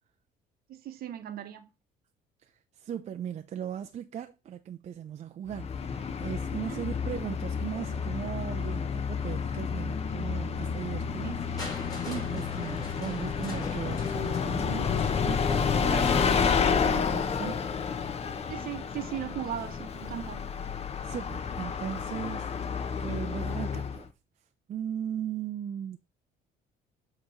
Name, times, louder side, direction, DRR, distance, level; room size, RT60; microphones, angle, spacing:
voice 1, 0.7-1.7 6.6-6.8 11.2-11.4 15.9-16.1 18.5-20.4, right 11 dB, 60° right, 1.0 m, -38 dB
voice 2, 2.4-17.6 21.0-22.5 23.0-24.1 24.7-26.0, right 9 dB, 40° right, 0.5 m, -38 dB
Bus, 5.5-24.1, left 6 dB, 40° left, 0.8 m, -30 dB
Crushing, 11.6-17.5 18.4-18.5, left 3 dB, 20° left, 4.2 m, -45 dB
7.8 x 3.0 x 5.1 m
cardioid pair, 110°, 17 cm